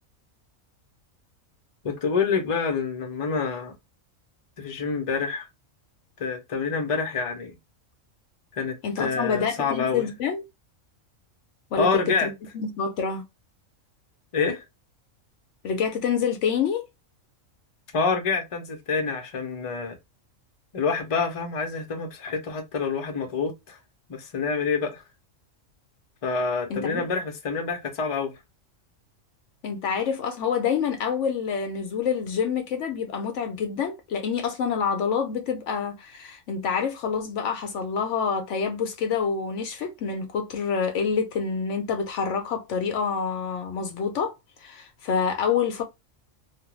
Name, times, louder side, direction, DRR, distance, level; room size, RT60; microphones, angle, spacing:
voice 1, 1.8-3.7 4.6-5.5 6.2-7.5 8.5-10.1 11.8-12.3 14.3-14.7 17.9-20.0 20.7-23.8 24.1-25.0 26.2-28.3, left 5 dB, 35° left, 0.6 m, -27 dB
voice 2, 8.8-10.4 11.7-13.2 15.6-16.9 26.7-27.0 29.6-44.3 44.6-45.8, left 6 dB, 70° left, 0.8 m, -27 dB
2.4 x 2.2 x 2.9 m
omnidirectional pair, 1.4 m